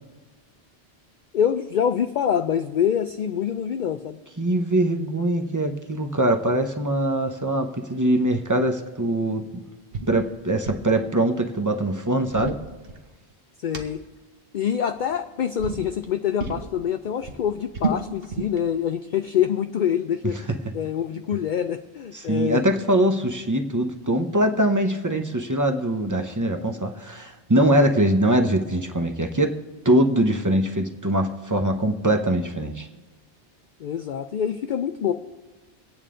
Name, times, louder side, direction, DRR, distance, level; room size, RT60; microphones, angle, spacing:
voice 1, 1.3-4.2 13.6-14.0 14.5-20.4 20.7-22.6 33.8-35.1, left 9 dB, 60° left, 9 dB, 0.5 m, -25 dB
voice 2, 4.4-9.6 10.1-12.6 20.5-20.6 22.1-29.5 29.8-32.9, right 1 dB, 20° right, 5 dB, 0.8 m, -22 dB
sound 1, 9.9-10.1 10.4-10.9 12.1-13.3 13.7-13.8 14.9-15.2 15.6-15.8 16.4-16.7 17.0-18.6, right 4 dB, 60° right, 1.2 m, -31 dB
24.0 x 8.9 x 3.7 m, 1.2 s
omnidirectional pair, 1.2 m